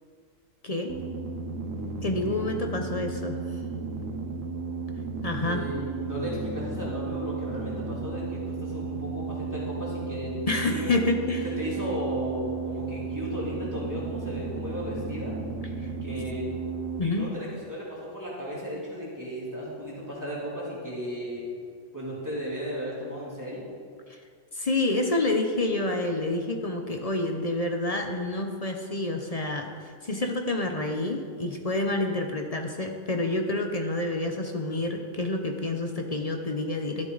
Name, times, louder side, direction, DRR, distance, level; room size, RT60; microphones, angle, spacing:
voice 1, 0.6-1.0 2.0-3.4 5.2-5.7 10.5-11.4 15.8-15.9 17.0-17.3 24.1-24.2 24.5-37.1, left 2 dB, 35° left, 3 dB, 0.8 m, -28 dB
sound 1, 0.9-17.0, right 4 dB, 80° right, 1.3 m, -34 dB
voice 2, 2.2-2.5 5.4-11.0 11.4-15.3 16.0-16.5 17.0-21.5 21.9-23.7, equal, 15° right, -7 dB, 3.2 m, -35 dB
13.0 x 10.5 x 4.0 m, 2.1 s
omnidirectional pair, 1.4 m